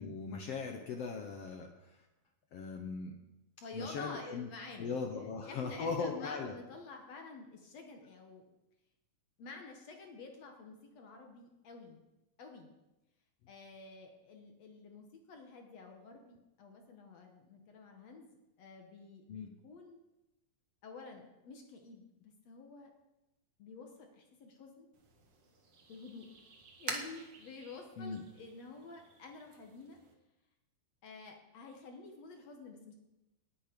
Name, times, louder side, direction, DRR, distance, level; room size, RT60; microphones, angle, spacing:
voice 1, 0.0-1.9 2.5-3.2 3.7-4.5 4.8-6.6 19.3-19.5 28.0-28.2, left 5 dB, 75° left, 3 dB, 1.4 m, -39 dB
voice 2, 3.6-8.4 9.4-12.0 12.4-12.7 13.5-18.3 18.6-20.0 20.8-22.9 23.6-24.9 25.9-26.3 26.8-30.0 31.0-32.9, left 3 dB, 60° left, 3 dB, 2.1 m, -50 dB
sound 1, 24.9-30.1, right 4 dB, 50° right, 2.0 m, -48 dB
18.5 x 8.6 x 5.2 m, 1.0 s
omnidirectional pair, 4.2 m